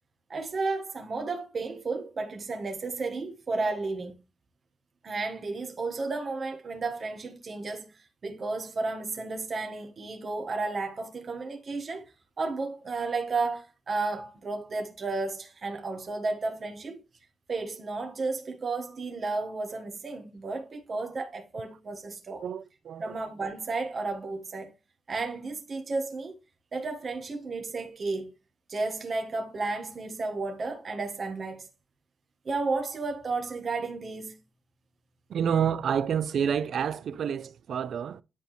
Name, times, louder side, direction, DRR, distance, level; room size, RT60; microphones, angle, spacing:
voice 1, 0.3-4.1 5.0-7.9 8.2-12.0 12.4-17.0 17.5-22.4 23.0-24.7 25.1-26.4 26.7-28.3 28.7-31.7 32.4-34.4, right 3 dB, 40° right, 1.7 m, -33 dB
voice 2, 22.4-23.1 35.3-38.2, right 8 dB, 70° right, 0.5 m, -28 dB
10.5 x 4.2 x 3.3 m
wide cardioid pair, 135°, 0 cm